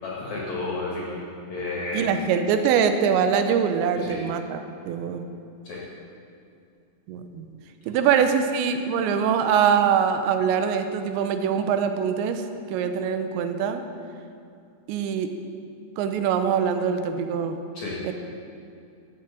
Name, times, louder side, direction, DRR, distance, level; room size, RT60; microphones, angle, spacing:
voice 1, 0.0-2.2 4.0-4.2 5.6-5.8 17.7-18.1, left 2 dB, 50° left, -4 dB, 2.4 m, -32 dB
voice 2, 1.9-5.3 7.1-7.5 7.9-13.8 14.9-15.3 16.0-17.6 18.0-18.1, right 7 dB, 80° right, 8 dB, 2.9 m, -23 dB
14.0 x 6.7 x 7.4 m, 2.5 s
omnidirectional pair, 5.4 m